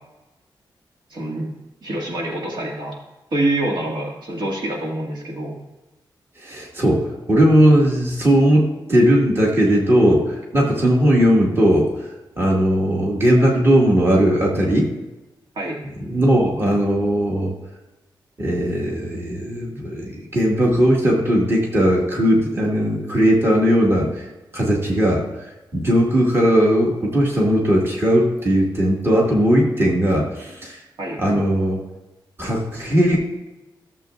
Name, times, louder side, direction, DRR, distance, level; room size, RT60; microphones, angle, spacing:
voice 1, 1.1-1.5 1.8-2.9 3.3-5.6 15.6-15.8 31.0-31.2, right 1 dB, 65° right, -2 dB, 2.1 m, -25 dB
voice 2, 6.4-11.9 12.4-14.9 16.1-17.5 18.4-24.1 24.5-25.2 25.7-30.8 31.2-31.8 32.4-33.2, equal, 30° right, -2 dB, 2.0 m, -18 dB
15.0 x 7.5 x 2.5 m, 1.1 s
wide cardioid pair, 175°, 8 cm